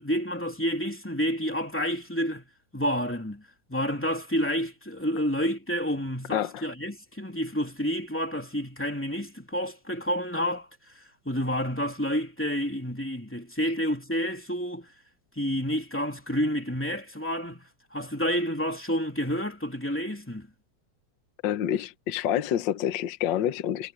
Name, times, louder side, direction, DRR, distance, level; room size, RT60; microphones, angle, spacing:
voice 1, 0.0-2.4 2.7-10.7 10.9-14.9 15.4-20.5, equal, 5° left, 2.5 m, -29 dB
voice 2, 6.3-6.6 21.4-23.9, left 11 dB, 70° left, 1.1 m, -28 dB
omnidirectional pair, 3.3 m